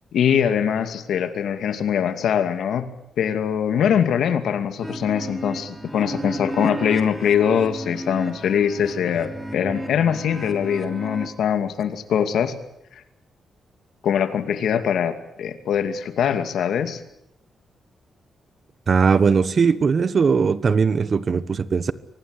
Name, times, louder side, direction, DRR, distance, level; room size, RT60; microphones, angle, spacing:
voice 1, 0.1-2.9 3.2-12.6 14.0-17.0, left 8 dB, 80° left, 2.4 m, -22 dB
sound 1, 4.8-11.3, right 1 dB, 10° right, 3.1 m, -33 dB
voice 2, 18.9-21.9, right 5 dB, 45° right, 1.3 m, -19 dB
25.0 x 18.5 x 9.9 m
cardioid pair, 95°, 0 cm